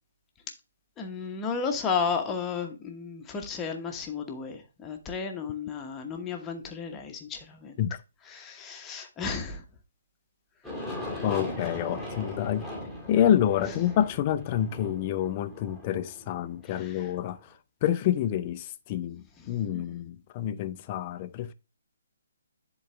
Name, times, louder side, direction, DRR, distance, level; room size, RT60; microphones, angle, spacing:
voice 1, 1.0-7.8 8.3-9.6 16.6-17.1 19.7-20.0, left 5 dB, 15° left, 1.1 m, -33 dB
Aircraft, 10.6-17.3, left 1 dB, 5° right, 1.9 m, -39 dB
voice 2, 11.2-12.7 13.1-17.4 17.8-21.5, left 10 dB, 30° left, 0.6 m, -28 dB
10.5 x 4.0 x 3.3 m
hypercardioid pair, 155°, 0 cm